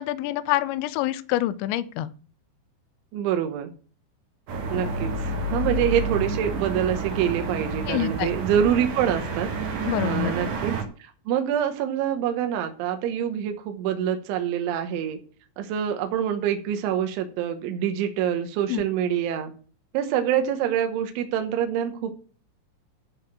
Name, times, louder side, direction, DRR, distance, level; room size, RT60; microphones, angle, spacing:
voice 1, 0.0-2.1 7.9-8.3 9.8-10.3 18.7-18.8, left 14 dB, 80° left, 14 dB, 2.9 m, -26 dB
voice 2, 3.1-3.7 4.7-9.5 10.0-15.2 15.6-19.5 19.9-22.1, right 9 dB, 80° right, 6 dB, 3.5 m, -26 dB
sound 1, 4.5-10.8, right 3 dB, 55° right, 2.9 m, -29 dB
13.5 x 4.9 x 7.3 m, 0.40 s
omnidirectional pair, 5.5 m